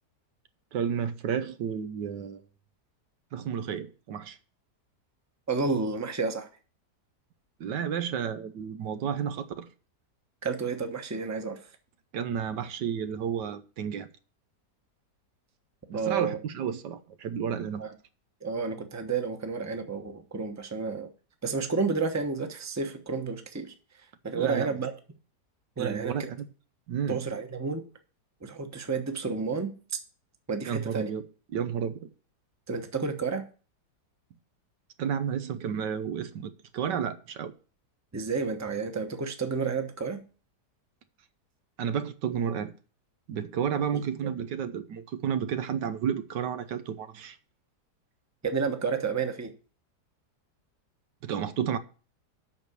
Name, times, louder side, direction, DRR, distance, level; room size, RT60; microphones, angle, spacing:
voice 1, 0.7-2.4 3.3-4.4 7.6-9.7 12.1-14.1 15.9-17.9 24.3-24.8 25.8-26.5 26.9-27.2 30.7-31.2 31.5-32.1 35.0-37.5 41.8-42.7 43.3-47.4 51.2-51.8, right 8 dB, 90° right, 1.5 m, -31 dB
voice 2, 5.5-6.5 10.4-11.6 15.9-16.4 17.8-17.9 18.4-21.1 21.4-23.7 24.2-24.9 25.8-26.3 27.1-27.9 28.4-30.0 30.5-31.1 32.7-33.5 38.1-40.2 43.9-44.3 48.4-49.5, right 4 dB, 15° right, 0.8 m, -31 dB
8.3 x 6.2 x 6.7 m
omnidirectional pair, 1.8 m